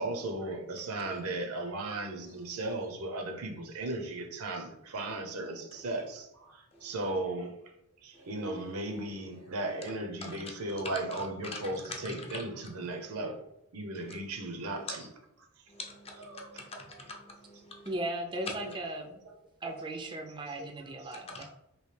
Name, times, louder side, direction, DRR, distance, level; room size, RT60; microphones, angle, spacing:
voice 1, 0.0-7.5 8.0-13.4 13.7-15.1 16.2-17.1 18.6-18.7 20.6-21.0, right 2 dB, 80° right, 3 dB, 0.6 m, -36 dB
voice 2, 12.0-12.4 15.0-15.1 15.7-17.9 21.3-21.4, left 2 dB, 25° left, 0 dB, 0.5 m, -45 dB
voice 3, 17.8-19.2 19.6-21.4, right 1 dB, 20° right, 2 dB, 0.4 m, -37 dB
3.1 x 2.7 x 3.2 m, 0.84 s
head